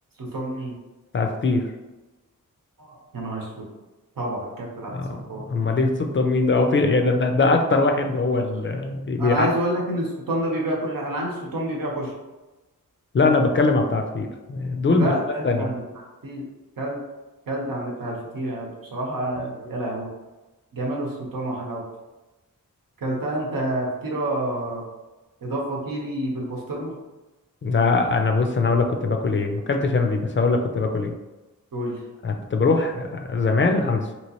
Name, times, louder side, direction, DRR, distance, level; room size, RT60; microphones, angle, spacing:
voice 1, 0.2-0.7 2.8-3.7 4.2-4.9 5.3-5.4 9.2-12.1 14.9-15.7 16.2-16.4 16.8-16.9 17.5-20.1 20.7-21.8 23.0-24.8 25.4-26.9 31.7-31.9, right 1 dB, 90° right, -2 dB, 0.9 m, -28 dB
voice 2, 1.1-1.7 4.9-5.2 5.5-9.5 13.1-15.1 15.4-15.7 27.6-31.1 32.2-34.1, left 3 dB, 35° left, 4 dB, 0.4 m, -21 dB
3.0 x 2.9 x 2.9 m, 1.1 s
wide cardioid pair, 105°, 33 cm